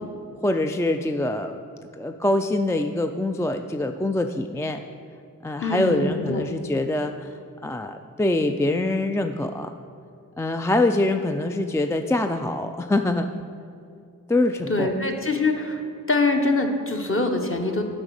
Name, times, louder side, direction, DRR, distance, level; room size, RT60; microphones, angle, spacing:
voice 1, 0.4-1.6 1.9-4.8 5.4-7.3 7.6-9.7 10.4-13.3 14.3-14.9, left 2 dB, 10° left, 6 dB, 0.3 m, -24 dB
voice 2, 5.6-6.4 14.7-15.8 16.1-17.8, left 2 dB, 40° left, 3 dB, 1.1 m, -24 dB
8.7 x 5.2 x 6.5 m, 2.3 s
cardioid pair, 50°, 34 cm